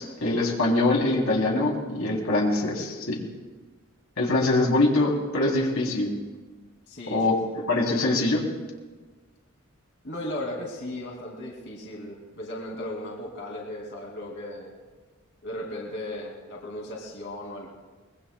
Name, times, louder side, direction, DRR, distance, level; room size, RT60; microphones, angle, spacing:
voice 1, 0.0-3.2 4.2-6.2 7.1-8.4, left 2 dB, 85° left, -1 dB, 3.3 m, -23 dB
voice 2, 6.9-7.2 10.0-14.7 15.4-17.7, left 1 dB, 55° left, -2 dB, 2.6 m, -36 dB
24.5 x 21.5 x 2.3 m, 1.3 s
head